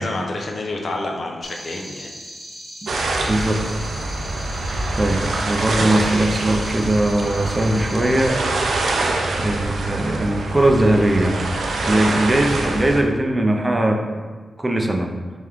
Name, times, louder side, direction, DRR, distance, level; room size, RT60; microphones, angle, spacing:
voice 1, 0.0-2.1 8.6-9.0 11.8-12.1, left 2 dB, 60° left, 1 dB, 0.6 m, -29 dB
sound 1, 1.4-8.3, equal, ahead, 1.0 m, -38 dB
sound 2, 2.9-13.0, right 2 dB, 80° right, 0.4 m, -25 dB
voice 2, 3.3-3.7 5.0-8.5 9.4-11.4 11.9-14.1 14.6-15.1, right 1 dB, 20° right, 3 dB, 0.4 m, -20 dB
3.7 x 3.5 x 3.0 m, 1.5 s
cardioid pair, 85°, 0 cm